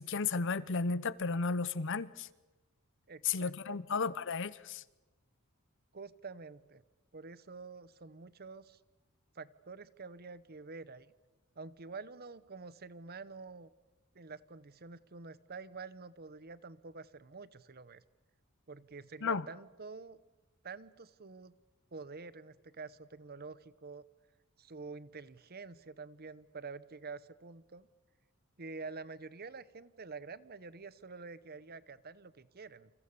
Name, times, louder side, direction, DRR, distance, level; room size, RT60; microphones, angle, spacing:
voice 1, 0.0-2.3 3.2-4.8 19.2-19.5, left 4 dB, 60° left, 0.9 m, -33 dB
voice 2, 3.1-3.9 5.9-6.8 7.1-8.8 9.3-11.1 11.6-13.7 14.1-18.0 18.7-20.2 20.6-21.5 21.9-24.0 24.6-27.9 28.6-32.9, right 4 dB, 45° right, 0.9 m, -48 dB
28.5 x 27.0 x 7.0 m
head